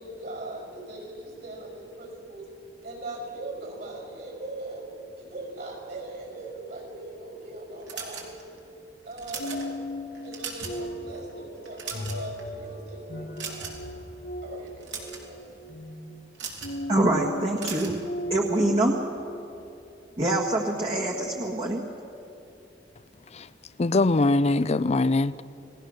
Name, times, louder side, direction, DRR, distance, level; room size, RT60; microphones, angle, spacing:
voice 1, 0.0-2.5 2.8-4.9 5.2-8.4 9.1-9.8 10.2-13.7 14.4-15.6, right 2 dB, 55° right, 1 dB, 5.6 m, -40 dB
sound 1, 7.9-8.6 9.1-9.6 10.1-10.8 11.1-11.3 11.7-12.4 13.4-13.9 14.7-15.2 16.3-16.8 17.6-18.0, right 6 dB, 75° right, 3.7 m, -37 dB
sound 2, 9.4-19.7, equal, 65° left, 1.5 m, -37 dB
voice 2, 16.9-17.9 18.3-19.0 20.2-21.8, right 1 dB, 35° right, -1 dB, 1.6 m, -25 dB
voice 3, 23.8-25.4, left 2 dB, 35° left, 16 dB, 0.5 m, -22 dB
29.5 x 18.5 x 6.5 m, 2.8 s
head